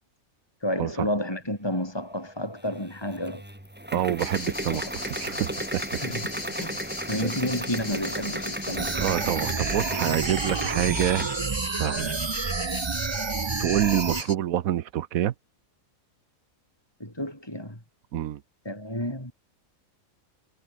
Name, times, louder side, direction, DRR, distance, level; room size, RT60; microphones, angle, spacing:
voice 1, 0.6-3.4 4.7-4.9 6.0-6.2 6.6-6.8 7.1-9.0 17.0-17.8 18.7-19.3, left 1 dB, 15° left, 5.5 m, -31 dB
sound 1, 2.6-11.4, right 1 dB, 5° right, 2.2 m, -35 dB
voice 2, 3.9-5.8 9.0-11.3 11.8-12.1 13.6-15.3 18.1-18.4, right 11 dB, 80° right, 1.2 m, -27 dB
sound 2, 4.2-14.3, left 2 dB, 65° left, 4.9 m, -37 dB
sound 3, 8.8-14.2, right 5 dB, 30° right, 0.5 m, -29 dB
omnidirectional pair, 1.4 m